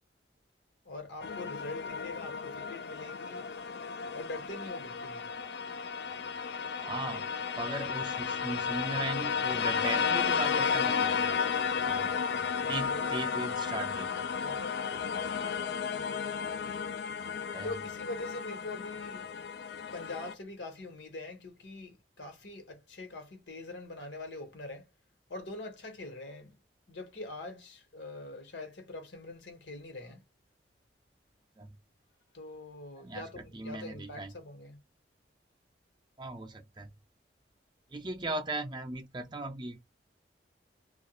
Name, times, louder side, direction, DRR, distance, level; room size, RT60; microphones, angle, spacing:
voice 1, 0.8-3.5 4.1-5.4 11.8-13.3 14.4-15.0 17.6-19.3 19.9-24.9 25.3-26.6 26.9-30.2 32.3-34.8, left 2 dB, 80° left, 1.2 m, -44 dB
sound 1, 1.2-20.3, left 6 dB, 65° left, 0.4 m, -33 dB
voice 2, 6.8-11.4 11.8-12.2 12.7-14.2 17.5-17.7 31.6-31.7 33.0-34.3 36.2-36.9 37.9-39.8, right 2 dB, 25° right, 0.5 m, -38 dB
2.4 x 2.3 x 2.9 m
head